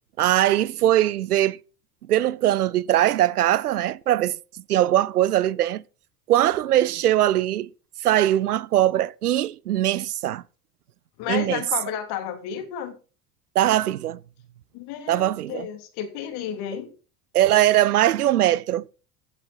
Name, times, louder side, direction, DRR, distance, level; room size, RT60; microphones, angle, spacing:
voice 1, 0.2-1.6 2.1-4.4 4.7-5.8 6.3-7.7 8.0-10.4 11.3-11.6 13.5-14.2 15.1-15.7 17.3-18.9, right 13 dB, 85° right, 0.6 m, -21 dB
voice 2, 11.2-13.0 14.7-16.9, left 10 dB, 55° left, 3.4 m, -32 dB
16.0 x 8.3 x 4.6 m
hypercardioid pair, 80°, 44 cm